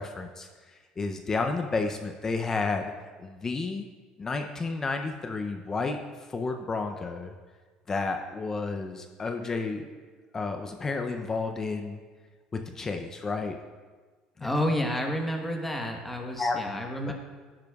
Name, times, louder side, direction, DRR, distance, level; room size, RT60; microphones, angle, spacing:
voice 1, 0.0-2.9 3.2-3.9 4.2-7.3 7.9-9.8 10.3-12.0 12.5-13.6 14.4-14.5 16.4-16.6 17.1-17.2, left 3 dB, 25° left, 5 dB, 0.5 m, -31 dB
voice 2, 14.4-17.1, left 1 dB, 5° left, 2 dB, 1.1 m, -30 dB
10.5 x 10.5 x 2.3 m, 1.4 s
cardioid pair, 125°, 2 cm